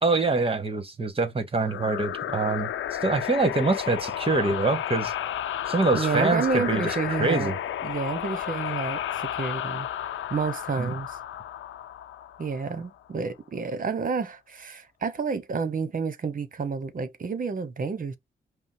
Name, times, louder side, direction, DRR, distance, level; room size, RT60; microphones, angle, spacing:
voice 1, 0.0-2.7 3.0-5.1 5.7-6.9 7.2-7.5 10.8-10.9, right 3 dB, 25° right, 1.4 m, -25 dB
sound 1, 1.6-13.0, left 10 dB, 75° left, 0.7 m, -32 dB
voice 2, 5.9-7.5 7.8-9.9 10.3-11.2 12.4-18.2, right 5 dB, 40° right, 1.0 m, -29 dB
5.3 x 2.1 x 4.8 m
supercardioid pair, 45°, 21 cm